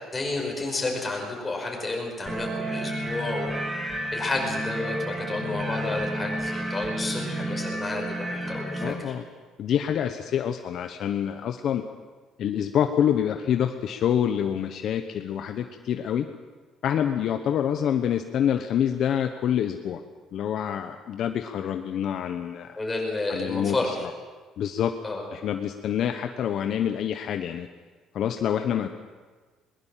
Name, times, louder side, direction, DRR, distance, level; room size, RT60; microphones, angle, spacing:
voice 1, 0.1-3.5 4.1-5.0 5.3-9.0 22.8-24.0 25.0-25.2, left 2 dB, 15° left, 0 dB, 5.3 m, -30 dB
sound 1, 2.3-8.9, right 1 dB, 20° right, 3.0 m, -31 dB
voice 2, 8.8-9.2 9.6-11.8 12.4-16.3 16.8-20.0 20.3-22.8 23.3-24.1 24.6-24.9 25.3-27.7 28.1-28.9, left 9 dB, 55° left, 7 dB, 1.0 m, -26 dB
21.5 x 20.5 x 7.5 m, 1.4 s
cardioid pair, 150°, 0 cm